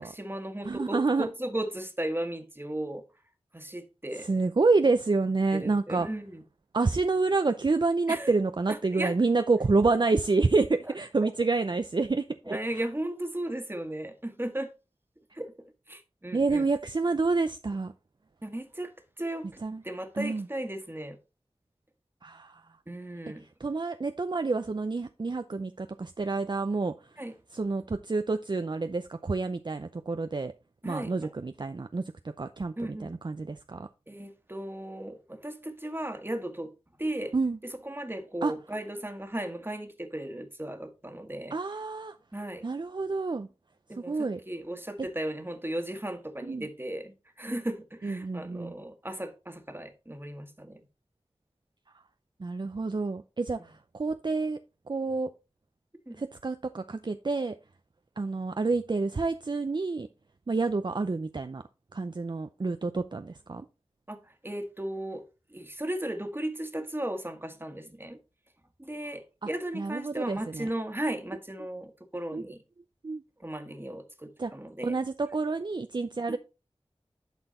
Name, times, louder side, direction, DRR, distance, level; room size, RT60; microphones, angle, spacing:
voice 1, 0.0-3.0 3.5-4.3 5.5-6.4 8.1-8.3 8.7-9.1 11.2-11.3 12.4-14.7 15.3-15.5 15.9-16.7 18.4-21.2 22.9-23.5 27.2-27.3 30.8-31.3 32.8-33.2 34.1-36.7 37.0-37.3 37.6-41.6 42.3-42.6 43.9-50.8 56.1-56.2 64.1-64.2 64.4-65.2 65.5-68.2 68.8-72.6 73.4-75.0 76.3-76.4, right 1 dB, 20° right, 1.6 m, -36 dB
voice 2, 0.6-1.3 4.3-6.1 6.7-12.6 16.3-17.9 19.6-19.8 20.2-20.5 22.2-22.6 23.6-26.9 27.5-30.5 30.8-32.0 32.4-32.7 33.0-33.9 37.3-37.6 38.4-38.5 41.5-42.2 42.6-43.5 44.0-44.4 46.4-46.7 48.0-48.7 52.4-54.6 54.9-55.3 56.2-57.6 58.2-60.1 60.5-61.6 61.9-63.7 69.4-69.5 69.7-70.7 72.3-72.4 73.0-73.2 74.4-74.5 74.8-76.4, right 3 dB, 45° right, 0.5 m, -28 dB
11.5 x 4.4 x 4.2 m
wide cardioid pair, 55°, 11 cm